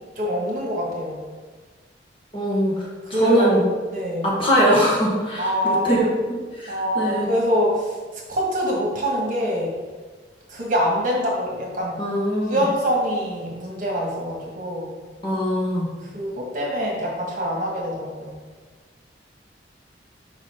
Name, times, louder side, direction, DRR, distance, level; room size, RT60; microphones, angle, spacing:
voice 1, 0.1-1.2 3.0-3.5 3.9-4.3 5.4-6.1 6.7-9.7 10.5-12.0 12.5-14.9 16.1-18.3, equal, 45° right, -2 dB, 1.4 m, -24 dB
voice 2, 2.3-2.7 3.1-3.6 4.2-6.1 6.6-7.2 12.0-12.6 15.2-15.9, equal, 30° left, -5 dB, 1.4 m, -21 dB
5.1 x 4.1 x 5.4 m, 1.4 s
head